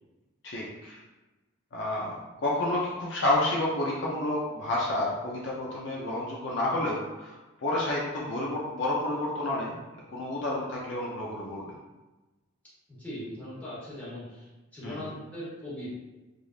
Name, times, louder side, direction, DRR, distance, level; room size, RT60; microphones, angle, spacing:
voice 1, 0.4-1.0 1.7-7.4 7.6-9.7 10.1-11.6 14.8-15.1, left 1 dB, 55° left, -4 dB, 0.5 m, -30 dB
voice 2, 12.9-15.9, left 1 dB, 5° left, -10 dB, 1.1 m, -40 dB
3.2 x 2.5 x 2.4 m, 1.1 s
head